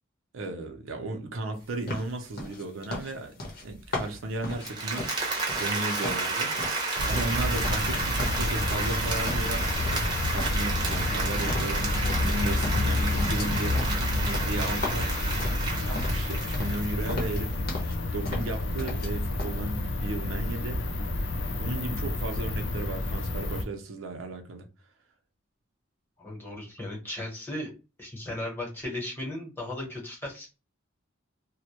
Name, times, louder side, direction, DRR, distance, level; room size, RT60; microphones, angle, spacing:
voice 1, 0.3-5.0 5.6-6.5 7.1-11.9 12.2-13.8 14.2-15.2 15.9-17.5 18.1-20.8 21.6-24.7, right 2 dB, 90° right, 0.5 m, -35 dB
sound 1, 1.9-5.8 6.0-7.9 8.2-9.0 9.3-10.1 10.4-12.4 12.6-16.3 16.5-16.8 17.1-18.0 18.2-19.1 19.4-19.6, left 2 dB, 50° left, 0.8 m, -37 dB
Applause, 4.5-17.5, right 3 dB, 25° right, 0.6 m, -31 dB
sound 2, 7.0-23.6, left 2 dB, 70° left, 0.4 m, -29 dB
voice 2, 26.2-27.7 28.0-30.5, left 1 dB, 10° left, 0.9 m, -36 dB
2.1 x 2.1 x 2.8 m
head